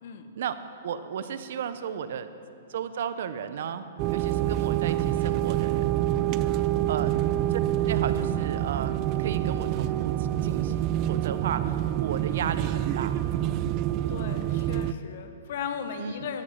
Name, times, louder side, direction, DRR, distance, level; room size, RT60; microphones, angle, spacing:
voice 1, 0.8-2.3 2.7-3.9 4.1-5.9 6.9-7.1 7.5-7.6 7.9-13.2 16.0-16.1, right 8 dB, 65° right, 12 dB, 0.7 m, -34 dB
sound 1, 4.0-14.9, right 12 dB, 30° right, 0.3 m, -27 dB
voice 2, 14.1-16.4, left 7 dB, 55° left, 8 dB, 1.0 m, -36 dB
13.0 x 8.1 x 5.7 m, 2.5 s
hypercardioid pair, 150°, 0 cm